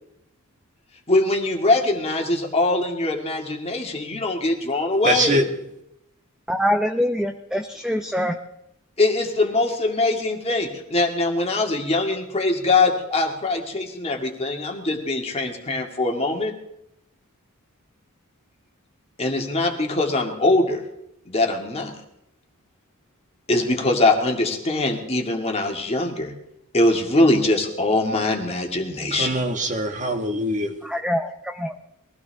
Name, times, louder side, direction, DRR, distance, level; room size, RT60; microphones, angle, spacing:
voice 1, 1.1-5.4 9.0-16.5 19.2-20.8 21.3-21.9 23.5-26.3 26.7-29.4, left 2 dB, 30° left, 2 dB, 2.2 m, -22 dB
voice 2, 5.1-5.5 29.1-30.7, right 1 dB, 35° right, 4 dB, 1.7 m, -23 dB
voice 3, 6.5-8.4 30.8-31.8, equal, 5° right, 5 dB, 0.7 m, -24 dB
22.0 x 16.0 x 3.5 m, 0.80 s
head